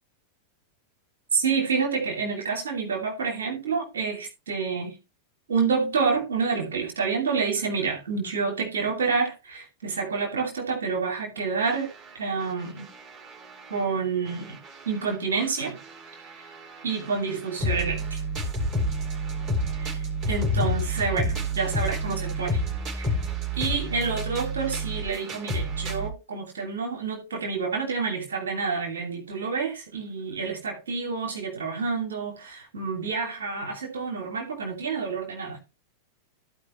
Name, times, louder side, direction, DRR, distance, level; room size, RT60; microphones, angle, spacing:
voice 1, 1.3-4.9 5.5-11.9 12.1-12.8 13.7-14.6 14.9-15.8 16.8-18.2 19.7-20.0 20.3-22.6 23.0-23.1 23.6-35.6, right 5 dB, 70° right, 2.6 m, -28 dB
sound 1, 11.6-13.8 14.3-26.1, equal, 30° right, 4.3 m, -30 dB
15.0 x 5.1 x 3.1 m
figure-of-eight pair, 90°, 0 cm